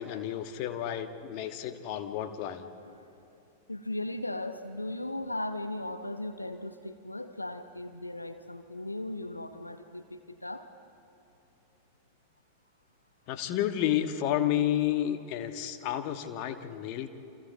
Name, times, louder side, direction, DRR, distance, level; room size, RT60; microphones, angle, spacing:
voice 1, 0.0-2.7 13.3-17.1, left 11 dB, 45° left, 8 dB, 1.4 m, -31 dB
voice 2, 3.7-10.7, left 1 dB, 85° left, 9 dB, 0.9 m, -37 dB
29.0 x 27.0 x 4.3 m, 2.9 s
figure-of-eight pair, 90°, 0 cm